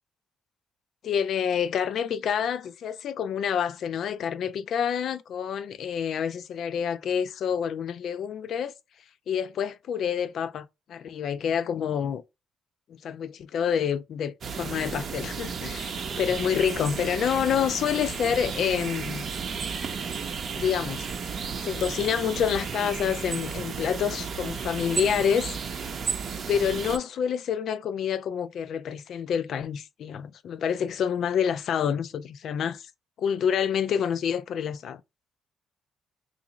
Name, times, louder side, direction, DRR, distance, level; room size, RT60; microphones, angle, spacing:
voice 1, 1.0-8.7 9.3-12.2 12.9-19.3 20.5-21.1 21.4-25.5 26.5-32.9 33.2-35.0, left 8 dB, 70° left, 0.3 m, -28 dB
sound 1, 14.4-27.0, right 6 dB, 55° right, 0.6 m, -33 dB
2.9 x 2.5 x 3.8 m
cardioid pair, 90°, 0 cm